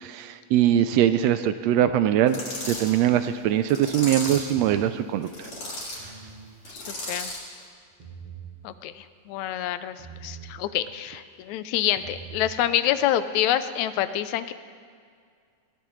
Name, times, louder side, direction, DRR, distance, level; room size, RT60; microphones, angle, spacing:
voice 1, 0.0-2.4 2.7-5.3, right 11 dB, 80° right, 10 dB, 1.6 m, -22 dB
alien language, 2.3-2.9 3.7-4.5 5.2-6.0 6.6-7.5, left 1 dB, 50° left, 4.4 m, -35 dB
sound 1, 6.0-6.5 7.9-8.5 10.0-10.5 11.9-12.5, right 7 dB, 55° right, 3.9 m, -42 dB
voice 2, 6.7-7.3 8.6-10.0 10.2-14.5, left 12 dB, 80° left, 12 dB, 1.9 m, -27 dB
20.5 x 16.0 x 3.2 m, 2.1 s
omnidirectional pair, 3.4 m